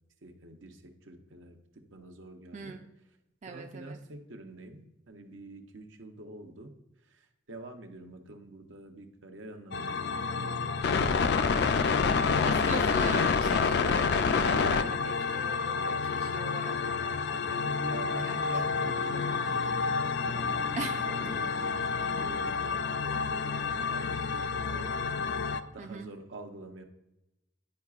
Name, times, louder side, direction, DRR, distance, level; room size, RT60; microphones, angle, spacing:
voice 1, 0.2-1.6 1.9-2.8 3.5-6.7 7.1-11.5 11.8-13.1 17.5-24.9 25.6-26.8, right 2 dB, 75° right, 5 dB, 0.8 m, -47 dB
voice 2, 2.5-2.9 3.4-4.0 12.3-16.8 18.2-18.9 20.8-21.1 25.8-26.1, right 4 dB, 40° right, 3 dB, 0.4 m, -41 dB
sound 1, 9.7-25.6, left 5 dB, 55° left, 0.4 m, -28 dB
10.5 x 4.7 x 2.4 m, 0.93 s
head